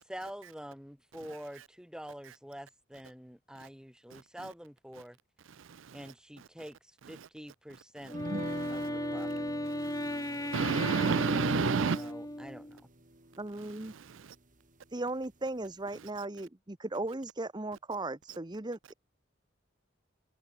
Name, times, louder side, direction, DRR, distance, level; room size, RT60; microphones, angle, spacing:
voice 1, 0.0-5.2 5.9-8.2 8.7-9.3 11.9-12.8, equal, 5° right, 8.0 m, -46 dB
Wind instrument woodwind instrument, 8.1-12.8, left 1 dB, 20° left, 3.4 m, -36 dB
sound 1, 8.1-14.9 15.2-15.3 15.7-15.8, right 1 dB, 40° right, 3.5 m, -45 dB
voice 2, 9.8-12.1 13.9-14.3, right 5 dB, 75° right, 0.5 m, -31 dB
voice 3, 13.4-13.9 14.9-18.9, right 2 dB, 20° right, 0.9 m, -37 dB
head